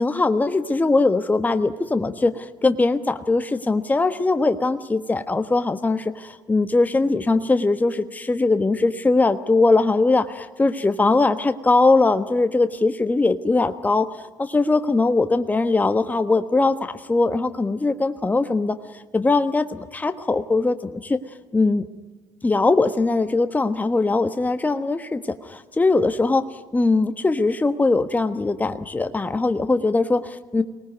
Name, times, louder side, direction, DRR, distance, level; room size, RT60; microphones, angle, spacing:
voice 1, 0.0-21.2 21.5-21.9 22.4-26.5 26.7-30.6, left 3 dB, 15° left, 9 dB, 1.3 m, -21 dB
23.5 x 19.5 x 9.5 m, 1.4 s
supercardioid pair, 75°, 9 cm